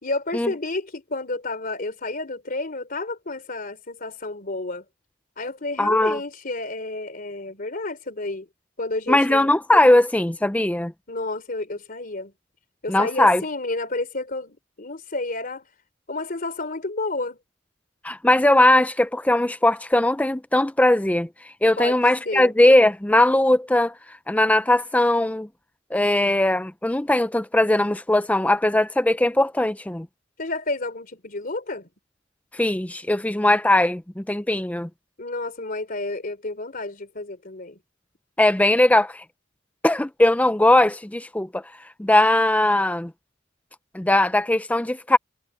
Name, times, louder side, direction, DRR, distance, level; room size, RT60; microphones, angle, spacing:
voice 1, 0.0-4.8 5.4-8.5 8.8-9.5 11.1-12.3 12.8-15.6 16.1-17.4 21.8-22.0 22.2-22.5 30.4-31.9 35.2-37.8, left 2 dB, 45° left, 3.5 m, -30 dB
voice 2, 5.8-6.2 9.1-10.9 12.9-13.4 18.0-21.3 21.6-23.9 24.3-25.5 25.9-30.1 32.5-34.9 38.4-39.2 39.8-41.6 42.0-43.1 43.9-45.2, left 1 dB, 5° left, 0.5 m, -19 dB
head